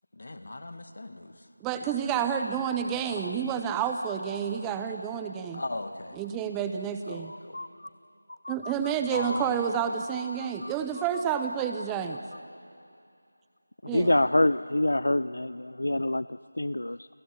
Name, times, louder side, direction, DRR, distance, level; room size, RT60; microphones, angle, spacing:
voice 1, 0.1-1.5 1.9-2.1 3.1-3.4 4.9-5.0 5.5-6.2 7.1-7.6 9.1-9.7 13.9-14.2, left 2 dB, 55° left, 8 dB, 1.9 m, -37 dB
voice 2, 1.6-5.6 6.2-7.3 8.5-12.2 13.8-14.1, right 8 dB, 10° right, 7 dB, 0.6 m, -29 dB
voice 3, 7.2-7.9 8.3-8.9 10.4-11.2 13.8-17.1, left 1 dB, 75° left, 16 dB, 0.5 m, -28 dB
28.5 x 16.5 x 10.0 m, 2.5 s
figure-of-eight pair, 170°, 0 cm